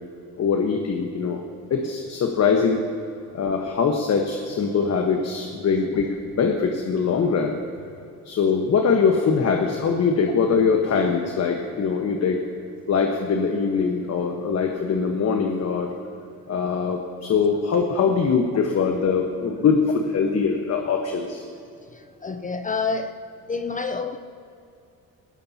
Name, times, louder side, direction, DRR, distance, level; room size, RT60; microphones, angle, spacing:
voice 1, 0.4-1.4 1.7-2.8 3.3-7.6 8.2-12.4 12.9-15.9 16.5-19.8 20.1-21.4, left 5 dB, 55° left, 3 dB, 1.3 m, -22 dB
voice 2, 21.9-23.2 23.5-24.2, left 4 dB, 25° left, 7 dB, 0.6 m, -28 dB
18.0 x 17.0 x 2.9 m, 2.7 s
cardioid pair, 90°, 30 cm